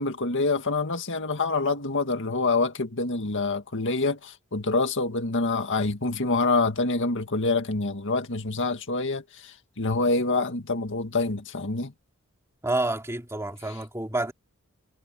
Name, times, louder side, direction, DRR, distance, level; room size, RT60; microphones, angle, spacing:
voice 1, 0.0-11.9, left 3 dB, 60° left, 1.9 m, -26 dB
voice 2, 12.6-14.3, right 2 dB, 15° right, 2.6 m, -28 dB
head